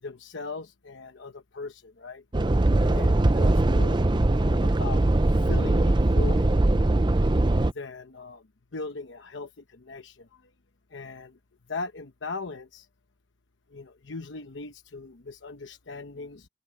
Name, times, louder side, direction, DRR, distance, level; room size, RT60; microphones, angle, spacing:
voice 1, 0.0-2.2 2.9-4.1 4.3-5.0 5.4-6.5 7.7-8.5 8.7-10.5 10.9-11.4 11.7-12.9 13.7-16.5, left 3 dB, 90° left, 1.0 m, -39 dB
sound 1, 2.3-7.7, right 2 dB, 25° right, 0.6 m, -21 dB
open air
head